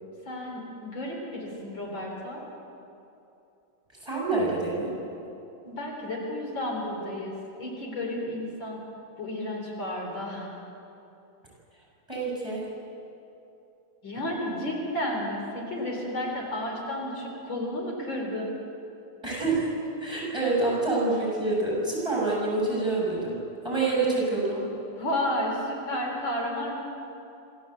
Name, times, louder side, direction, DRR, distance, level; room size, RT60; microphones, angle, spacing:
voice 1, 0.3-2.4 5.7-8.8 9.2-10.5 14.0-18.5 25.0-26.8, left 1 dB, 75° left, -1 dB, 4.6 m, -32 dB
voice 2, 4.0-4.9 12.1-12.7 19.2-19.7 20.0-23.4 23.6-24.7, right 3 dB, 15° right, -5 dB, 7.7 m, -27 dB
26.5 x 15.0 x 8.2 m, 2.8 s
omnidirectional pair, 2.1 m